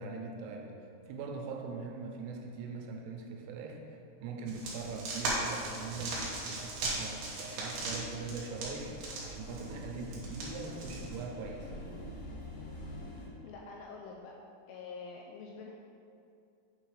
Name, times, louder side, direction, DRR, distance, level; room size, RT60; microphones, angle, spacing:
voice 1, 0.0-8.9 9.2-11.7, right 4 dB, 85° right, 1 dB, 3.2 m, -42 dB
sound 1, 4.5-11.2, right 2 dB, 65° right, 2.5 m, -38 dB
sound 2, 7.8-13.3, left 1 dB, 70° left, 3.5 m, -46 dB
voice 2, 13.4-14.3 14.7-15.8, left 4 dB, 85° left, -1 dB, 2.8 m, -46 dB
8.3 x 3.9 x 4.8 m, 2.5 s
omnidirectional pair, 5.9 m